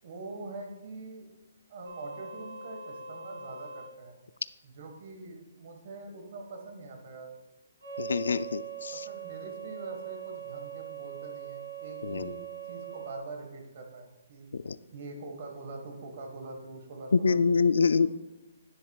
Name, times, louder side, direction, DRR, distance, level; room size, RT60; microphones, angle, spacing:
voice 1, 0.0-1.3 1.7-4.2 4.6-7.3 8.9-14.5 14.9-17.6 17.8-17.9, right 3 dB, 40° right, 4 dB, 1.6 m, -44 dB
sound 1, 1.8-3.9 7.8-13.2, right 8 dB, 90° right, 1.9 m, -41 dB
voice 2, 8.0-9.0 12.0-12.3 14.5-14.8 17.1-18.1, left 5 dB, 90° left, 14 dB, 0.4 m, -25 dB
10.5 x 10.5 x 2.4 m, 1.1 s
hypercardioid pair, 170°, 0 cm